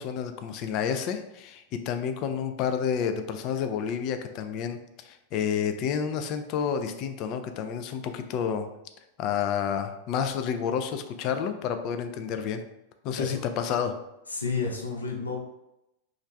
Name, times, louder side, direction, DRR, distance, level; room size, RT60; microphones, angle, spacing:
voice 1, 0.0-8.7 9.2-12.6 13.0-14.0, left 7 dB, 40° left, 7 dB, 0.3 m, -30 dB
voice 2, 14.3-15.4, left 4 dB, 80° left, 0 dB, 0.6 m, -31 dB
3.1 x 2.5 x 3.1 m, 0.87 s
figure-of-eight pair, 90°, 0 cm